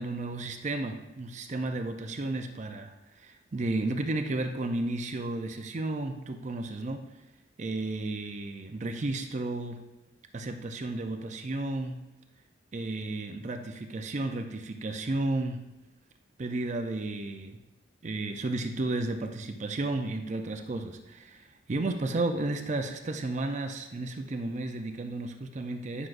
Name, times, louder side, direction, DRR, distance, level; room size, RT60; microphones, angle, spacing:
voice 1, 0.0-7.1 7.6-9.8 10.3-12.0 12.7-15.6 16.4-17.6 18.0-26.1, right 2 dB, 40° right, 5 dB, 0.5 m, -33 dB
9.8 x 6.0 x 2.5 m, 0.96 s
head